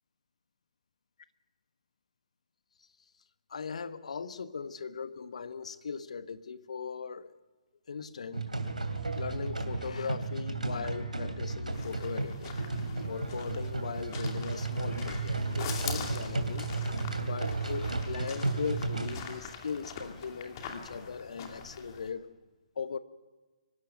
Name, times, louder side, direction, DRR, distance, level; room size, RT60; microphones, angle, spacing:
voice 1, 3.5-7.3 7.9-8.5 9.2-12.5 13.1-16.7 17.2-22.3 22.8-23.0, left 5 dB, 60° left, 1.1 m, -39 dB
sound 1, 8.3-19.2, right 3 dB, 80° right, 2.7 m, -34 dB
sound 2, 11.7-22.1, left 6 dB, 35° left, 2.6 m, -44 dB
23.5 x 12.5 x 9.2 m
figure-of-eight pair, 130°, 4 cm